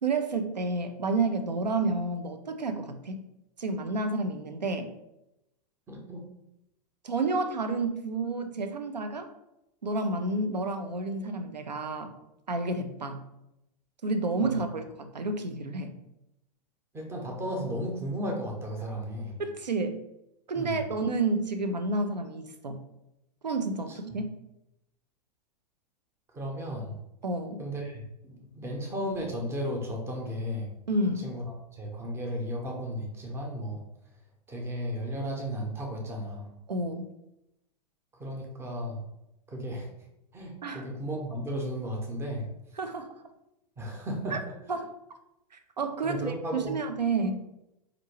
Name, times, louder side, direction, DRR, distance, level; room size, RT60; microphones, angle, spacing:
voice 1, 0.0-3.2 3.6-4.9 7.0-9.3 9.8-12.1 12.5-13.2 14.0-15.9 19.4-20.0 20.5-22.8 23.4-24.3 27.2-27.6 30.9-31.3 36.7-37.1 40.6-40.9 42.8-43.2 44.3-44.4 44.7-44.9 45.8-47.4, right 3 dB, 80° right, 7 dB, 0.5 m, -30 dB
voice 2, 5.9-6.2 14.4-14.6 16.9-19.4 20.5-20.8 23.9-24.2 26.3-27.0 27.6-30.7 31.2-31.4 31.7-33.8 34.5-36.5 38.1-39.0 39.5-39.9 40.3-42.5 43.8-44.4 46.0-46.8 47.2-47.3, equal, 10° right, 0 dB, 0.7 m, -34 dB
4.3 x 2.6 x 2.9 m, 0.86 s
figure-of-eight pair, 100°, 21 cm